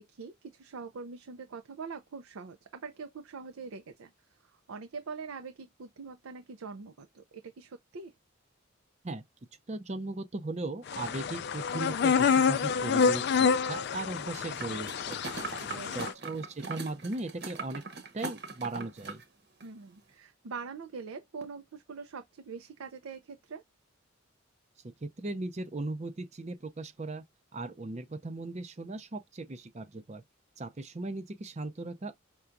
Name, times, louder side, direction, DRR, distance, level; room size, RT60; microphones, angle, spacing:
voice 1, 0.0-4.1 4.4-8.1 15.6-15.9 19.6-23.6, right 4 dB, 80° right, 0.5 m, -43 dB
voice 2, 9.7-15.2 15.7-17.8 18.1-19.2 24.8-27.2 27.5-30.2 30.6-32.1, right 2 dB, 30° right, 0.5 m, -38 dB
sound 1, 10.9-16.1, left 6 dB, 50° left, 0.3 m, -28 dB
sound 2, 14.6-19.2 19.6-19.7, right 4 dB, 50° right, 1.0 m, -41 dB
5.7 x 2.3 x 2.5 m
head